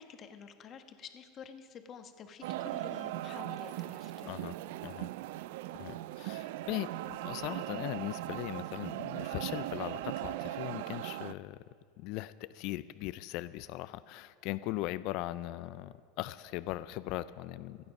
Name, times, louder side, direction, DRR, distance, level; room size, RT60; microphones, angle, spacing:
voice 1, 0.0-4.4 7.6-7.9, left 7 dB, 35° left, 7 dB, 1.2 m, -50 dB
sound 1, 2.4-11.3, right 15 dB, 70° right, 0.4 m, -39 dB
voice 2, 5.8-11.6 12.0-17.8, left 17 dB, 55° left, 14 dB, 0.4 m, -39 dB
27.0 x 9.5 x 5.3 m, 2.3 s
supercardioid pair, 145°, 0 cm